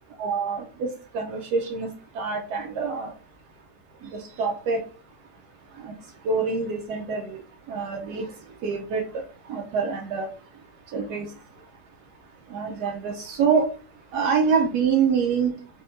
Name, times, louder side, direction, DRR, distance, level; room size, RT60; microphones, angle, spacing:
voice 1, 0.2-1.9 2.1-3.1 4.4-4.8 5.8-5.9 6.2-7.4 7.7-8.2 8.6-9.0 9.5-10.3 10.9-11.3 12.5-13.7 14.1-15.5, right 5 dB, 80° right, 1 dB, 1.1 m, -25 dB
3.6 x 2.8 x 2.7 m, 0.37 s
omnidirectional pair, 1.7 m